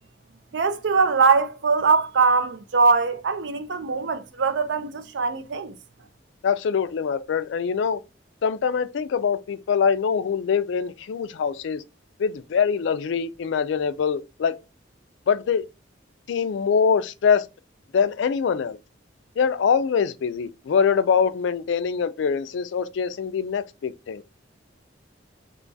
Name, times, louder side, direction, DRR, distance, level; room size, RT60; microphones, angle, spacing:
voice 1, 0.5-5.7, right 4 dB, 65° right, 0.5 m, -22 dB
voice 2, 6.4-8.0 8.4-11.8 12.2-14.6 15.3-15.6 16.3-17.5 17.9-18.8 19.4-24.2, left 6 dB, 75° left, 0.3 m, -23 dB
3.1 x 2.3 x 3.9 m
head